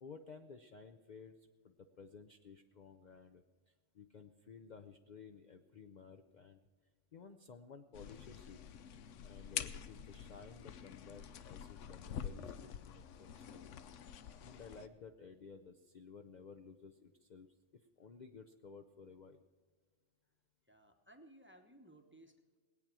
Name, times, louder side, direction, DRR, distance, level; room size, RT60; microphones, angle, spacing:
voice 1, 0.0-6.6 7.1-8.6 9.2-13.7 14.4-19.4, left 5 dB, 50° left, 6 dB, 0.6 m, -55 dB
sound 1, 7.9-14.9, left 8 dB, 75° left, 1.0 m, -47 dB
voice 2, 20.6-22.6, right 1 dB, 10° right, 6 dB, 0.9 m, -61 dB
19.5 x 8.8 x 6.1 m, 1.5 s
omnidirectional pair, 1.3 m